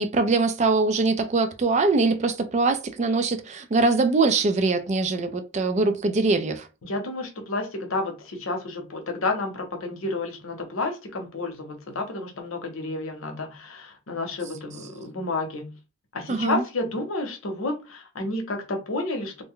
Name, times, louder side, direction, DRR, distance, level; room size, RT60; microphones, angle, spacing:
voice 1, 0.0-6.7 16.3-16.6, right 3 dB, 35° right, 0.4 m, -22 dB
voice 2, 6.8-15.7 16.1-19.4, left 2 dB, 80° left, 0.7 m, -30 dB
2.5 x 2.1 x 3.6 m
head